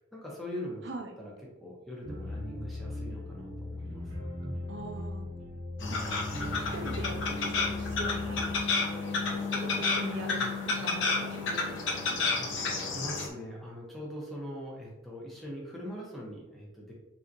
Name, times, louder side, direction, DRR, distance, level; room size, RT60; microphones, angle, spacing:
voice 1, 0.0-0.9 1.2-1.3 1.6-4.1 10.4-10.5 12.4-16.9, equal, ahead, -4 dB, 0.7 m, -42 dB
sound 1, 2.0-8.6, left 1 dB, 90° right, 1.0 m, -39 dB
voice 2, 4.7-5.3 5.9-6.2 6.5-12.2, right 2 dB, 60° right, 3 dB, 0.5 m, -42 dB
sound 2, 5.8-13.3, left 4 dB, 75° left, 0.7 m, -31 dB
3.4 x 2.8 x 2.5 m, 1.0 s
head